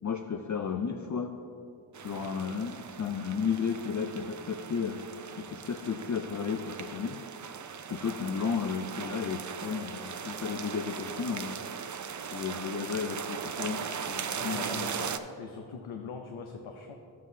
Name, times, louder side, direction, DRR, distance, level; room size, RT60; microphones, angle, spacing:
voice 1, 0.0-1.3 2.0-5.0 5.4-7.2 7.9-11.5 12.3-14.7, left 6 dB, 40° left, 4 dB, 0.4 m, -33 dB
sound 1, 1.9-15.2, right 7 dB, 40° right, 0.4 m, -39 dB
voice 2, 14.4-16.9, left 5 dB, 80° left, 3 dB, 0.7 m, -41 dB
11.5 x 7.5 x 2.7 m, 2.6 s
wide cardioid pair, 80°, 48 cm